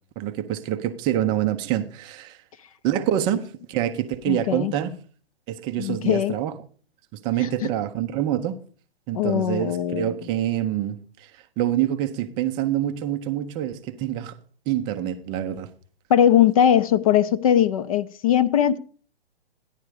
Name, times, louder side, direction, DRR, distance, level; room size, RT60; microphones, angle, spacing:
voice 1, 0.2-2.4 2.8-4.9 5.5-6.5 7.1-8.6 9.1-11.3 11.6-14.4 14.7-15.7, right 11 dB, 15° right, 0.5 m, -26 dB
voice 2, 4.3-4.7 5.8-6.4 7.4-7.7 9.1-10.1 16.1-18.8, left 10 dB, 35° left, 0.6 m, -20 dB
14.0 x 10.5 x 4.8 m
figure-of-eight pair, 135°, 32 cm